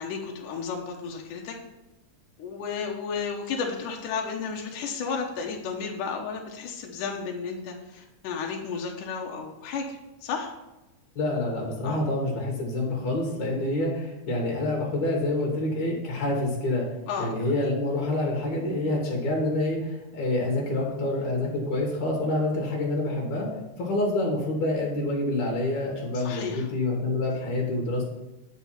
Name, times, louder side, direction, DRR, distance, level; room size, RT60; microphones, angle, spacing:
voice 1, 0.0-1.6 2.4-10.5 11.8-12.0 17.1-17.3 17.6-17.7 26.1-26.7, left 5 dB, 85° left, 1 dB, 2.6 m, -33 dB
voice 2, 11.2-16.9 17.2-23.5 23.8-28.0, left 2 dB, 65° left, -1 dB, 3.2 m, -27 dB
9.5 x 5.5 x 5.8 m, 1.0 s
omnidirectional pair, 3.6 m